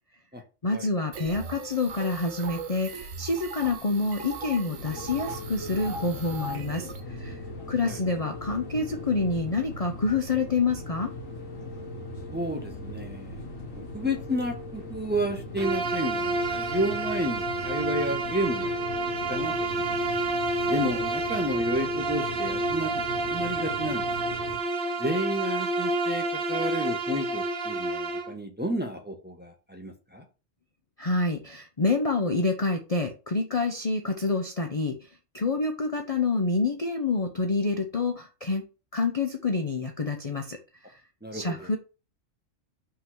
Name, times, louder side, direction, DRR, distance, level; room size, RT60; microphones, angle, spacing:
voice 1, 0.6-7.4 7.7-11.1 31.0-35.0 35.3-38.6 38.9-40.6 41.3-41.8, left 3 dB, 35° left, 0.7 m, -27 dB
sound 1, 1.1-7.0, right 4 dB, 80° right, 1.4 m, -39 dB
sound 2, 4.8-24.6, left 2 dB, 85° left, 2.1 m, -40 dB
voice 2, 12.3-13.4 13.8-18.7 19.3-20.0 20.7-23.0 23.3-24.1 25.0-30.2 41.2-41.7, equal, 10° right, 1.2 m, -31 dB
Bowed string instrument, 15.6-28.3, right 2 dB, 50° right, 0.9 m, -29 dB
5.6 x 3.9 x 6.0 m
omnidirectional pair, 1.3 m